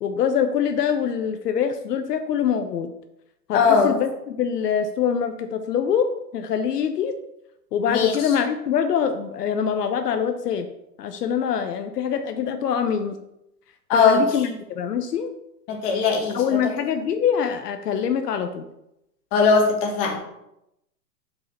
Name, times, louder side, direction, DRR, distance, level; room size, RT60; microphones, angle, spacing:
voice 1, 0.0-2.9 3.5-7.1 7.7-10.7 11.0-13.2 13.9-15.3 16.3-18.6, left 7 dB, 70° left, 7 dB, 0.8 m, -24 dB
voice 2, 3.5-3.9 7.9-8.3 13.9-14.2 15.7-16.6 19.3-20.2, left 5 dB, 25° left, 0 dB, 1.3 m, -19 dB
5.4 x 4.5 x 5.7 m, 0.84 s
hypercardioid pair, 150°, 50 cm